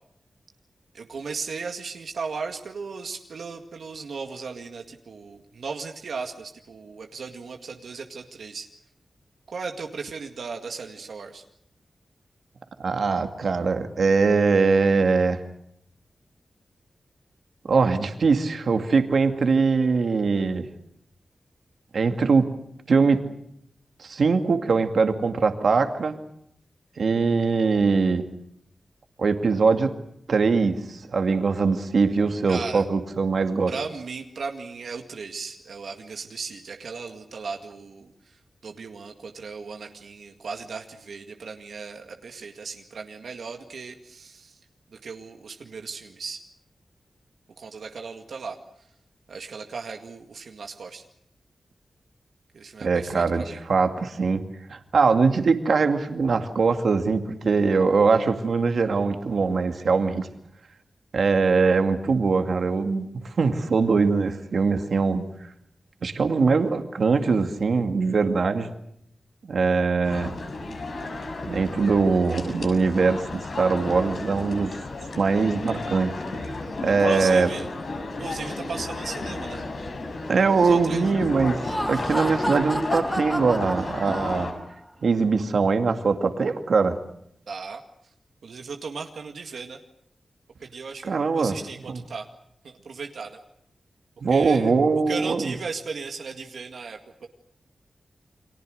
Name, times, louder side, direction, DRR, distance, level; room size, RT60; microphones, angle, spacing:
voice 1, 0.9-8.7 9.5-11.4 32.5-32.8 33.7-44.6 44.9-46.4 47.6-48.9 49.3-51.0 52.5-53.6 76.9-77.7 78.2-79.6 80.5-81.0 87.5-88.1 88.4-89.8 90.6-92.3 92.6-93.4 94.3-94.7 95.1-97.3, right 5 dB, 90° right, 4 dB, 2.0 m, -36 dB
voice 2, 12.8-15.4 17.7-20.7 21.9-22.5 22.9-23.2 24.0-26.1 27.0-28.2 29.2-29.9 30.3-33.7 52.8-54.4 54.7-60.3 61.1-65.3 66.0-68.7 69.4-70.3 71.5-74.7 75.2-76.1 76.8-77.5 80.3-84.5 85.0-87.0 91.1-91.5 91.9-92.0 94.2-95.5, right 4 dB, 75° right, 6 dB, 2.3 m, -22 dB
sound 1, 70.0-84.5, left 2 dB, 70° left, 6.6 m, -33 dB
Laughter, 81.5-84.7, equal, ahead, 1.8 m, -31 dB
30.0 x 24.0 x 6.5 m, 0.73 s
wide cardioid pair, 95°, 0 cm